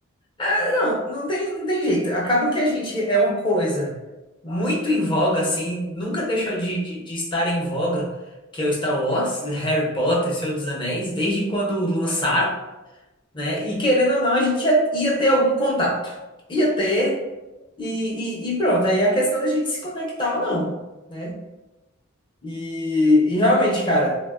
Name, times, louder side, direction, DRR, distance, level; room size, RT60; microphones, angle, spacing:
voice 1, 0.4-3.9 4.4-8.1 8.5-12.5 13.3-16.2 16.5-17.2 17.8-20.7 21.1-21.4 22.4-24.2, equal, 25° left, -2 dB, 0.5 m, -22 dB
3.3 x 2.0 x 2.3 m, 1.0 s
head